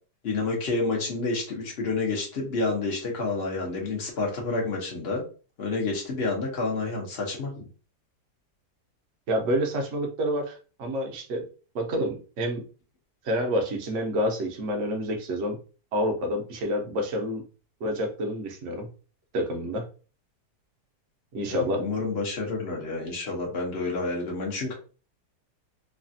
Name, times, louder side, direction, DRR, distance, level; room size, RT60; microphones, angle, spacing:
voice 1, 0.2-5.2 5.6-7.7 21.4-24.7, left 3 dB, 50° left, -1 dB, 0.8 m, -29 dB
voice 2, 9.3-11.5 11.7-12.6 13.2-15.6 15.9-17.4 17.8-18.9 19.3-19.9 21.3-21.8, equal, 55° right, 3 dB, 0.9 m, -28 dB
3.2 x 2.3 x 2.6 m, 0.36 s
omnidirectional pair, 1.8 m